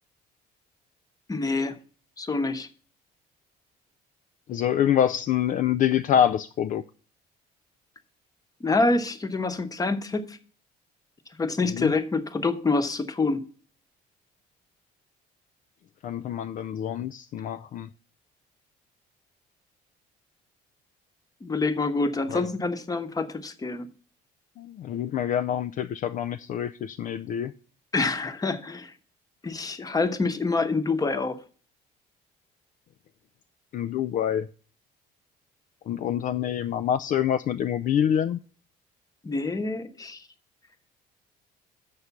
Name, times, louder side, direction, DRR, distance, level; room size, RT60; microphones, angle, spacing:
voice 1, 1.3-1.8 2.2-2.7 8.6-10.4 11.4-13.4 21.4-23.9 27.9-28.9 29.4-31.4 39.2-40.2, left 3 dB, 20° left, 1.0 m, -26 dB
voice 2, 4.5-6.8 11.7-11.9 16.0-17.9 22.3-22.4 24.6-27.5 33.7-34.5 35.9-38.4, left 10 dB, 50° left, 0.4 m, -26 dB
8.2 x 6.4 x 5.9 m
cardioid pair, 110°, 17 cm